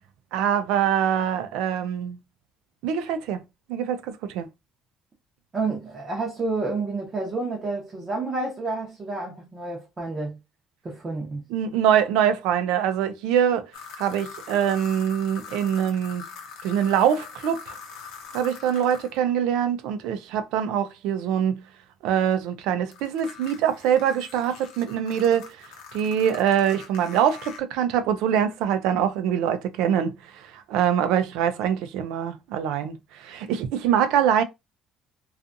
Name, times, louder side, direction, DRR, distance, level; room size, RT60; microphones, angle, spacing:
voice 1, 0.3-2.2 2.8-3.4 3.7-4.5 11.5-13.7 14.0-16.2 16.6-17.7 18.3-21.6 22.0-25.6 25.9-34.4, right 9 dB, 90° right, 0.4 m, -24 dB
voice 2, 5.5-10.4 10.8-11.4, right 3 dB, 20° right, 0.7 m, -29 dB
sound 1, 13.7-19.2 22.9-27.6, left 6 dB, 85° left, 0.6 m, -42 dB
2.6 x 2.4 x 2.5 m
cardioid pair, 165°, 0 cm